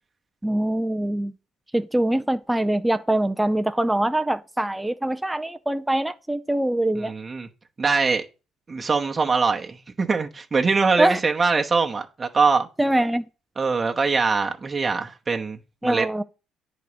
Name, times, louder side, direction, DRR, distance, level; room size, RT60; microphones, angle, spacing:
voice 1, 0.4-1.3 1.7-7.1 11.0-11.2 12.8-13.3 15.8-16.2, right 1 dB, 10° right, 0.5 m, -23 dB
voice 2, 6.9-7.5 7.8-8.3 8.7-12.7 13.6-16.1, right 4 dB, 30° right, 1.0 m, -23 dB
9.4 x 4.1 x 5.1 m
hypercardioid pair, 60°, 0 cm